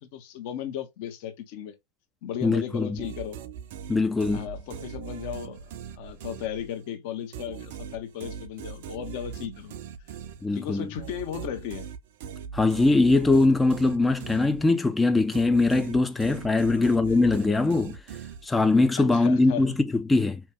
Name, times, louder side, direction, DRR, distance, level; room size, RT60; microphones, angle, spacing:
voice 1, 0.0-1.7 2.2-3.4 4.3-5.7 6.0-9.7 10.1-10.2 10.5-11.9 16.7-16.9 19.0-19.7, left 10 dB, 45° left, 1.1 m, -36 dB
voice 2, 2.4-2.9 3.9-4.4 10.4-10.9 12.5-18.0 18.4-20.4, left 3 dB, 10° left, 0.5 m, -22 dB
sound 1, 3.0-6.9 7.3-15.0 15.3-18.8, right 8 dB, 50° right, 0.5 m, -40 dB
4.4 x 3.0 x 3.5 m
figure-of-eight pair, 90°, 0 cm